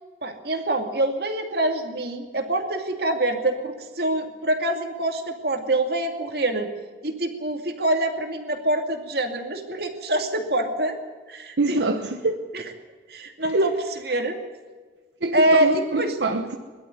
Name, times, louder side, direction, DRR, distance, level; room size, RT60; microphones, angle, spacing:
voice 1, 0.2-6.7 7.0-11.0 11.3-11.8 12.5-12.6 13.1-13.7 14.0-14.4 15.3-16.2, right 1 dB, 60° right, 5 dB, 2.5 m, -25 dB
voice 2, 11.6-12.4 13.5-13.7 15.2-16.6, right 2 dB, 80° right, 5 dB, 1.2 m, -24 dB
22.0 x 12.5 x 9.6 m, 1.4 s
head